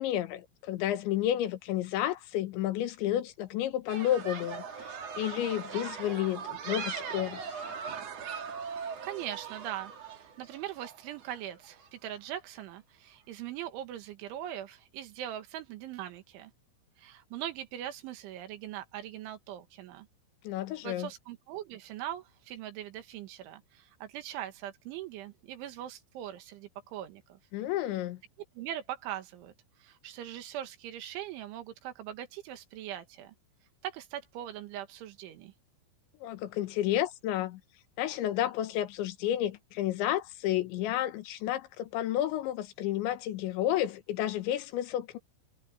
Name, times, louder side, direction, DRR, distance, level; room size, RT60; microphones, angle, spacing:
voice 1, 0.0-7.7 20.5-21.1 27.5-28.2 36.2-37.6 38.0-45.2, left 12 dB, 75° left, 3.5 m, -31 dB
sound 1, 3.9-11.9, right 6 dB, 45° right, 2.3 m, -40 dB
voice 2, 9.0-16.5 17.0-20.1 20.8-27.4 28.6-29.5 29.8-33.4 33.8-35.5, right 12 dB, 80° right, 4.0 m, -41 dB
omnidirectional pair, 5.5 m